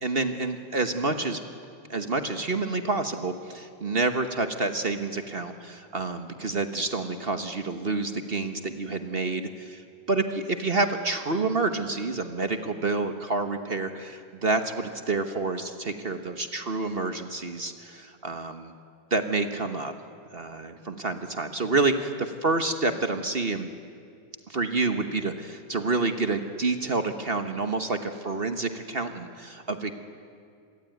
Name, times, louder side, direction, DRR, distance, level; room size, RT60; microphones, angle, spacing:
voice 1, 0.0-1.4 1.9-18.7 19.1-19.9 20.3-23.7 24.5-29.9, right 3 dB, 35° right, 7 dB, 1.2 m, -28 dB
26.5 x 22.5 x 9.3 m, 2.3 s
omnidirectional pair, 2.1 m